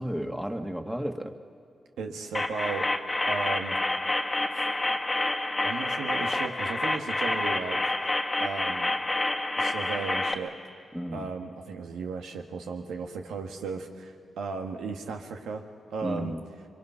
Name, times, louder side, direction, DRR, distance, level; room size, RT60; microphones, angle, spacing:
voice 1, 0.0-1.3 10.9-11.3 16.0-16.4, equal, 5° right, 5 dB, 1.8 m, -33 dB
voice 2, 2.0-2.9 3.3-3.8 4.5-4.7 5.6-8.1 8.4-8.9 9.6-10.5 11.1-15.6 15.9-16.3, right 5 dB, 85° right, 4 dB, 1.6 m, -35 dB
sound 1, 2.3-10.3, left 2 dB, 25° left, 1.6 m, -28 dB
25.5 x 22.5 x 5.7 m, 2.2 s
supercardioid pair, 50°, 0 cm